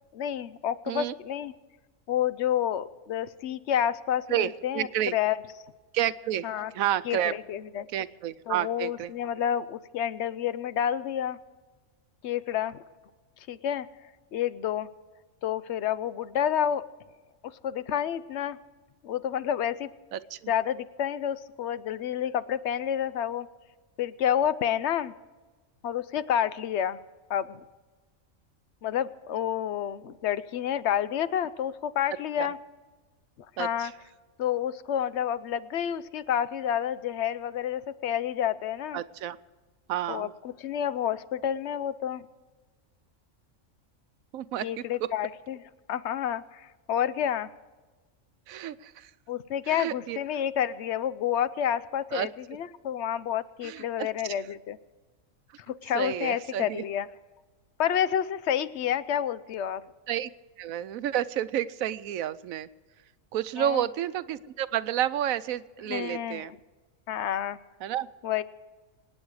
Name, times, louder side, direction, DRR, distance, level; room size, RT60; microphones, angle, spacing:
voice 1, 0.1-1.5 2.1-5.4 6.4-6.7 7.1-7.2 7.5-7.9 8.5-11.4 12.2-12.8 13.5-13.9 14.3-14.9 15.4-16.8 17.6-18.6 19.0-19.9 20.5-23.5 24.0-25.1 25.8-27.0 27.3-27.6 28.8-32.6 33.6-33.9 34.4-39.0 40.1-42.2 44.6-45.6 45.9-47.5 49.3-54.8 55.7-57.1 57.8-59.8 63.6-63.8 65.9-66.5 67.1-67.6 68.2-68.4, left 9 dB, 60° left, 15 dB, 0.9 m, -29 dB
voice 2, 4.3-5.1 5.9-6.5 6.7-7.3 7.9-9.1 20.1-20.5 32.4-32.5 33.6-33.9 38.9-39.4 39.9-40.3 44.3-44.7 48.5-49.1 49.7-50.2 52.1-52.3 53.6-54.4 55.9-56.8 60.1-60.3 60.6-62.7 63.3-66.5 67.8-68.1, right 11 dB, 85° right, 15 dB, 1.1 m, -30 dB
25.5 x 9.6 x 4.8 m, 1.3 s
omnidirectional pair, 1.4 m